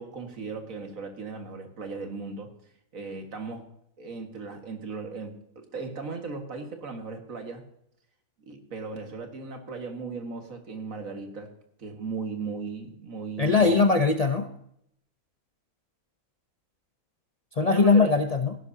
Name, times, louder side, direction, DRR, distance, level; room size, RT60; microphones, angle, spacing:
voice 1, 0.0-2.5 2.9-3.7 4.0-7.6 8.5-11.5 11.8-13.7 17.6-18.1, right 4 dB, 60° right, 4 dB, 2.1 m, -37 dB
voice 2, 13.4-14.5 17.6-18.6, left 4 dB, 55° left, 5 dB, 0.4 m, -21 dB
16.0 x 11.5 x 2.8 m, 0.73 s
omnidirectional pair, 1.6 m